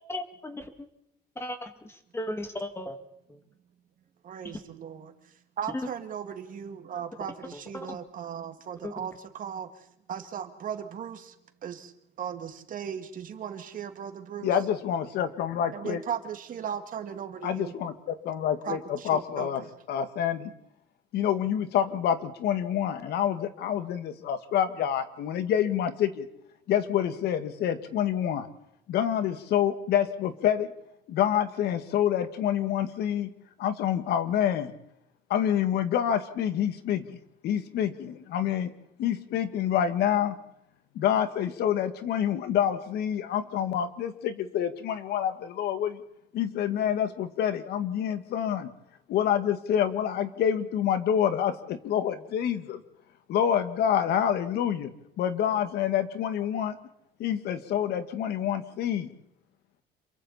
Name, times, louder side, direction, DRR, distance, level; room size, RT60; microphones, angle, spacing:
voice 1, 0.1-0.6 1.4-1.7 2.1-3.0 7.7-8.0 8.8-8.9, left 1 dB, 15° left, 6 dB, 2.6 m, -35 dB
voice 2, 4.2-5.1 5.6-11.3 11.6-11.9 12.2-14.6 15.7-17.7 18.6-19.7, right 8 dB, 55° right, 7 dB, 2.3 m, -37 dB
voice 3, 14.4-16.0 17.4-19.6 19.9-20.5 21.1-26.3 26.7-28.5 28.9-30.7 31.1-33.3 33.6-34.7 35.3-37.2 37.4-38.7 39.0-40.3 41.0-46.0 46.3-48.7 49.1-52.8 53.3-54.9 55.2-56.8 57.2-59.1, left 9 dB, 75° left, 10 dB, 1.9 m, -27 dB
27.5 x 23.0 x 4.3 m, 0.77 s
cardioid pair, 110°, 17 cm